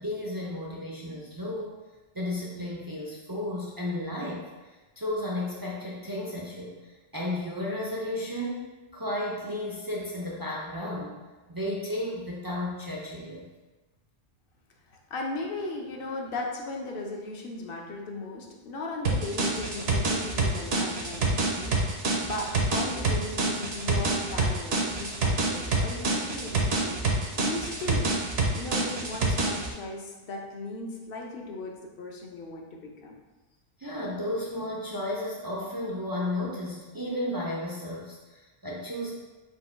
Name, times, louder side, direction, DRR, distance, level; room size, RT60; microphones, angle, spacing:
voice 1, 0.0-1.7 2.1-4.5 5.0-11.2 11.5-13.5 33.8-39.1, left 1 dB, 35° right, -4 dB, 0.3 m, -33 dB
voice 2, 14.9-27.0 27.4-28.1 28.5-33.2, left 2 dB, 60° left, 0 dB, 0.8 m, -37 dB
sound 1, 19.0-29.7, right 3 dB, 70° right, 0.9 m, -27 dB
4.4 x 2.2 x 4.3 m, 1.2 s
omnidirectional pair, 1.1 m